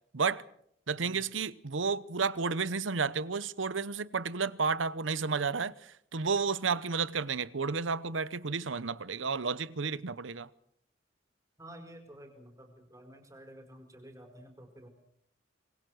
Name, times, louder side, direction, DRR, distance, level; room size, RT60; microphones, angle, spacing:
voice 1, 0.9-10.5, right 5 dB, 90° right, 0.9 m, -32 dB
voice 2, 11.6-14.9, right 1 dB, 20° right, 4.9 m, -51 dB
26.0 x 21.0 x 6.4 m
head